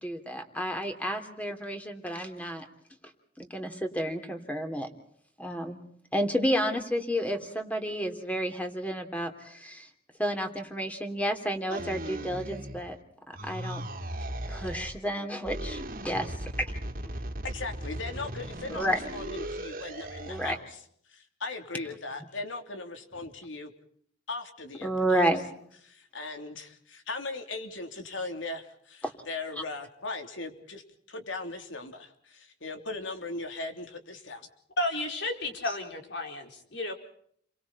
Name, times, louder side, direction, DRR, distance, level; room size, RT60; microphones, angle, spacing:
voice 1, 0.0-2.6 3.4-4.9 5.4-5.8 6.1-9.9 10.2-13.0 13.3-13.8 14.5-16.5 18.7-19.0 20.3-20.5 24.8-25.4, equal, 10° left, 6 dB, 3.1 m, -31 dB
sound 1, 11.7-13.0 13.3-15.0 15.4-20.6, right 1 dB, 50° right, 2.5 m, -37 dB
voice 2, 17.4-20.8 21.1-23.7 24.3-25.2 25.8-30.8 31.1-34.5, left 3 dB, 85° left, 5 dB, 3.3 m, -38 dB
voice 3, 34.8-36.9, left 1 dB, 65° left, 3 dB, 4.8 m, -32 dB
30.0 x 24.0 x 4.2 m, 0.63 s
head